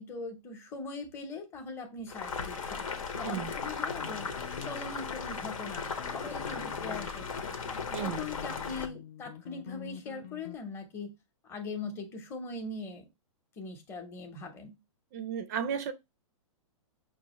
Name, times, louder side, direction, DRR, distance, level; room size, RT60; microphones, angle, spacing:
voice 1, 0.0-2.8 3.1-4.3 4.6-7.5 8.0-11.1 11.5-13.1 13.6-14.8, left 3 dB, 15° left, 0.8 m, -41 dB
Boiling, 2.1-8.9, left 5 dB, 85° left, 1.1 m, -37 dB
sound 1, 4.0-10.6, left 10 dB, 40° left, 0.5 m, -47 dB
voice 2, 7.9-8.3 15.1-15.9, right 8 dB, 30° right, 0.4 m, -34 dB
5.9 x 2.5 x 2.9 m
hypercardioid pair, 155°, 17 cm